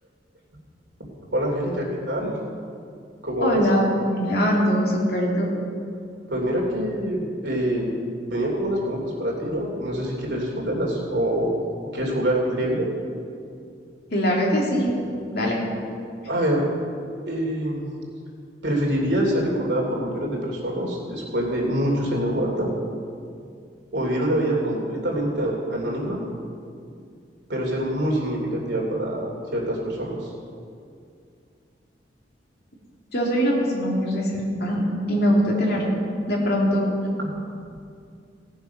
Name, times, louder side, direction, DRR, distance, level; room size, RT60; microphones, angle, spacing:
voice 1, 1.3-2.4 3.2-3.6 6.3-7.9 8.3-11.5 11.9-12.9 16.3-16.6 17.2-17.9 18.6-22.7 23.9-26.2 27.5-30.3 37.2-37.3, right 1 dB, 70° right, -2 dB, 3.1 m, -25 dB
voice 2, 3.4-5.5 14.1-14.9 15.3-15.6 33.1-35.9 36.3-36.9, equal, 60° left, -2 dB, 2.6 m, -22 dB
17.5 x 7.1 x 5.8 m, 2.4 s
head